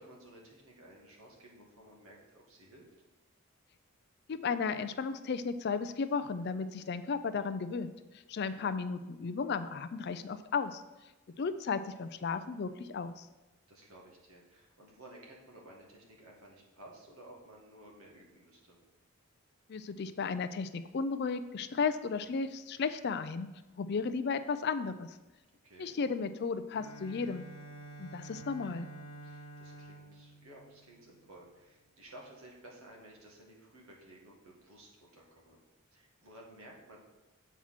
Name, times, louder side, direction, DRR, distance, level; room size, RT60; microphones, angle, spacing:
voice 1, 0.0-2.9 8.3-8.7 13.7-18.8 25.6-25.9 29.2-35.6 35.9-37.0, right 1 dB, 75° right, -2 dB, 1.9 m, -55 dB
voice 2, 4.3-10.8 11.4-13.3 19.7-23.5 23.8-25.2 25.8-27.4 28.0-28.9, left 5 dB, 50° left, 11 dB, 0.4 m, -34 dB
Bowed string instrument, 26.7-31.5, right 2 dB, 75° left, 1.3 m, -50 dB
7.2 x 4.6 x 5.7 m, 1.1 s
head